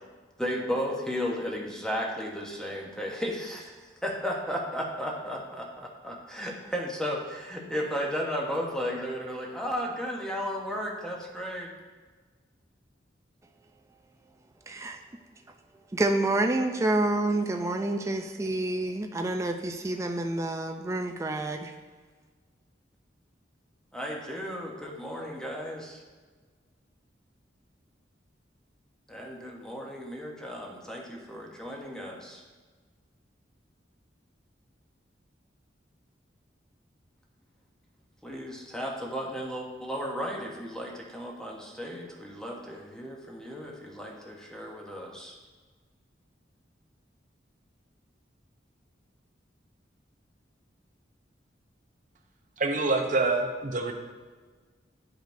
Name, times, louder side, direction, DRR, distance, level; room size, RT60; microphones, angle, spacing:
voice 1, 0.4-3.7 4.0-11.7 23.9-26.0 29.1-32.4 38.2-45.3, equal, 5° left, -1 dB, 0.8 m, -34 dB
voice 2, 14.7-15.0 15.9-21.7, right 2 dB, 15° right, 4 dB, 0.3 m, -28 dB
voice 3, 52.6-53.9, right 3 dB, 45° right, 4 dB, 0.7 m, -26 dB
10.5 x 5.1 x 2.6 m, 1.4 s
head